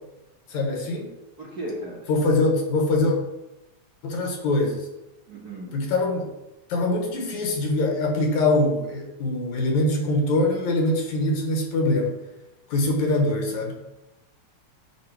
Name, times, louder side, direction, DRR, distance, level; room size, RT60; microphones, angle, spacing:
voice 1, 0.5-1.1 2.1-3.2 4.0-4.8 5.7-6.3 6.7-12.1 12.7-13.8, left 2 dB, 75° left, 1 dB, 2.7 m, -23 dB
voice 2, 1.4-2.5 5.3-5.7, right 1 dB, 45° right, -5 dB, 1.6 m, -36 dB
8.5 x 3.8 x 6.0 m, 0.96 s
omnidirectional pair, 3.3 m